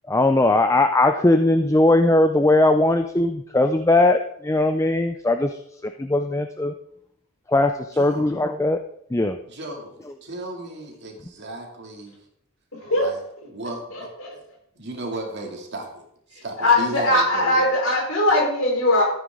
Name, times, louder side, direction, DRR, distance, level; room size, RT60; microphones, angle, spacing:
voice 1, 0.1-6.7 7.5-8.8 9.1-9.4, left 2 dB, 15° left, 7 dB, 0.4 m, -19 dB
voice 2, 7.9-8.3 9.5-9.9 10.2-12.2 12.9-13.2 13.5-14.4 14.8-16.0 16.3-17.7, right 2 dB, 50° right, 1 dB, 2.5 m, -35 dB
voice 3, 12.7-13.1 13.9-14.4 16.3-19.1, left 1 dB, 70° left, -1 dB, 4.2 m, -20 dB
13.5 x 9.1 x 3.7 m, 0.71 s
head